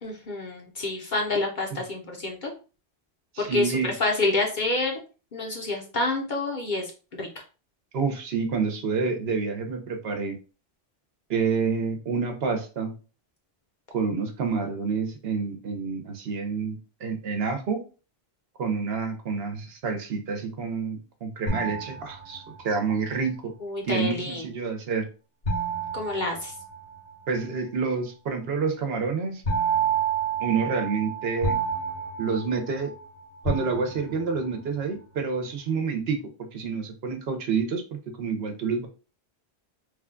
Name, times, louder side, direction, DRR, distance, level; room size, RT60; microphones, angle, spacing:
voice 1, 0.0-2.5 3.4-3.7 4.0-5.0 5.3-6.9 7.2-7.4 23.6-24.4 25.9-26.5, left 2 dB, 50° left, 1 dB, 0.8 m, -28 dB
voice 2, 3.3-3.9 7.9-10.4 11.3-12.9 13.9-17.8 18.6-23.5 23.9-25.1 27.3-29.4 30.4-31.6 32.2-32.9 33.4-36.2 36.5-37.8 38.2-38.9, right 5 dB, 70° right, 6 dB, 1.0 m, -28 dB
sound 1, 21.5-22.7 25.5-27.1 29.5-33.0 33.5-34.4, right 5 dB, 70° left, 1.2 m, -29 dB
3.3 x 2.3 x 3.6 m, 0.35 s
omnidirectional pair, 1.1 m